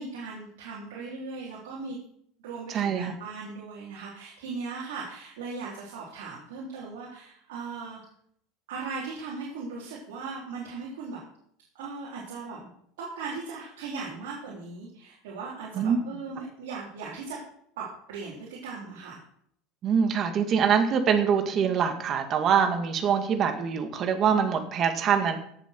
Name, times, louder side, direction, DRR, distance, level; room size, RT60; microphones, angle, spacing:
voice 1, 0.0-2.0 2.4-8.0 8.7-11.2 11.7-12.7 13.0-17.4 17.8-19.2, right 4 dB, 90° right, -5 dB, 3.9 m, -38 dB
voice 2, 2.7-3.1 15.8-16.0 19.8-25.4, right 7 dB, 40° right, 6 dB, 2.1 m, -24 dB
17.0 x 7.4 x 4.7 m, 0.66 s
supercardioid pair, 125°, 0 cm